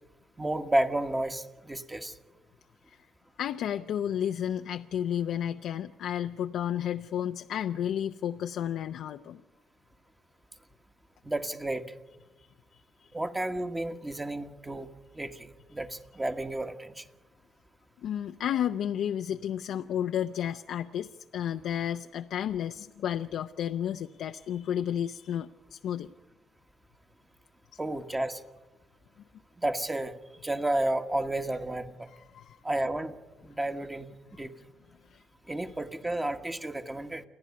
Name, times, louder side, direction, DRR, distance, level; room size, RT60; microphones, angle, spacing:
voice 1, 0.4-2.1 11.2-11.9 13.1-14.9 15.1-17.1 27.8-28.4 29.6-30.2 30.4-32.1 32.6-33.1 33.4-34.5 35.5-37.2, right 1 dB, 15° right, 6 dB, 1.4 m, -31 dB
voice 2, 3.4-9.4 12.4-13.1 18.0-26.1 27.7-27.8 32.1-32.6 35.1-35.2 35.6-35.8, left 10 dB, 75° left, 7 dB, 0.6 m, -32 dB
29.0 x 10.5 x 9.7 m, 1.1 s
cardioid pair, 90°, 0 cm